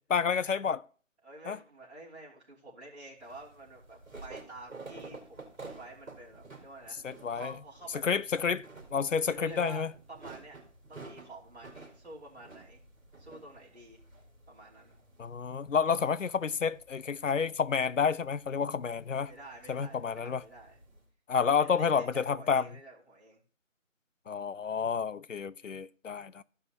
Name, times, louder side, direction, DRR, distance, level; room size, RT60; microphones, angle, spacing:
voice 1, 0.1-0.8 1.5-1.6 7.0-7.5 8.0-8.6 8.9-9.9 15.2-19.3 19.7-20.4 21.3-22.7 24.3-26.4, left 6 dB, 65° left, 0.5 m, -29 dB
voice 2, 1.2-7.0 7.3-8.4 9.1-10.6 10.9-12.8 13.2-14.0 14.5-15.0 19.2-20.8 21.6-23.4, right 2 dB, 55° right, 3.0 m, -49 dB
sound 1, 3.2-21.0, right 3 dB, 70° right, 2.9 m, -52 dB
15.0 x 5.5 x 2.9 m
figure-of-eight pair, 180°, 41 cm